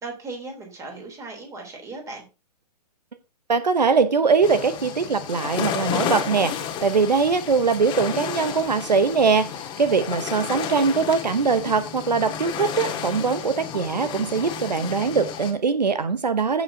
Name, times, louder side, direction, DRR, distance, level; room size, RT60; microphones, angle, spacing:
voice 1, 0.0-2.3, right 3 dB, 15° right, 2 dB, 3.2 m, -37 dB
voice 2, 3.5-6.5 6.8-9.5 9.8-16.6, right 5 dB, 85° right, 13 dB, 0.8 m, -22 dB
sound 1, 4.4-15.5, left 8 dB, 25° left, 1.6 m, -32 dB
15.0 x 6.1 x 2.7 m, 0.30 s
figure-of-eight pair, 125°, 21 cm